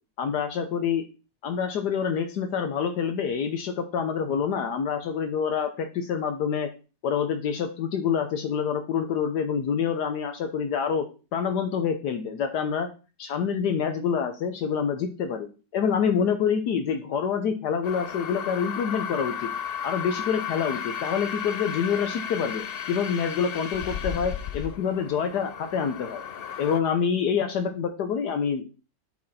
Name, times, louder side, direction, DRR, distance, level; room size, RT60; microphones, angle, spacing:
voice 1, 0.2-1.0 1.4-6.7 7.0-11.1 11.3-12.9 13.2-19.5 19.8-26.2 26.6-28.7, left 7 dB, 75° left, 7 dB, 1.3 m, -27 dB
sound 1, 17.8-26.8, left 8 dB, 90° left, 0.5 m, -34 dB
8.6 x 4.7 x 4.1 m, 0.33 s
omnidirectional pair, 1.9 m